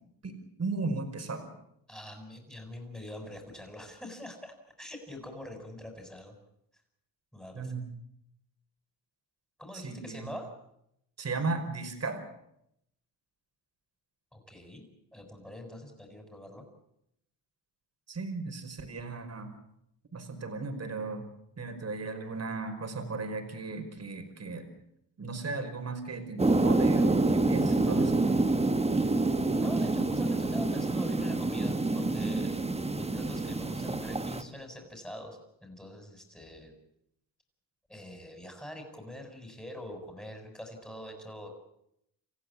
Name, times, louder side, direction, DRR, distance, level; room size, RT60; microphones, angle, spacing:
voice 1, 0.2-1.5 7.5-7.9 9.7-10.3 11.2-12.2 18.1-19.5 20.1-21.3 21.6-24.7 25.2-28.2, right 3 dB, 40° right, 6 dB, 5.1 m, -36 dB
voice 2, 1.9-4.5 4.8-6.4 7.3-7.7 9.6-10.5 14.3-16.6 29.5-36.7 37.9-41.5, left 1 dB, 5° left, 2 dB, 6.6 m, -44 dB
sound 1, 26.4-34.4, right 2 dB, 15° right, 1.6 m, -27 dB
29.0 x 15.0 x 8.6 m, 0.77 s
cardioid pair, 90°, 40 cm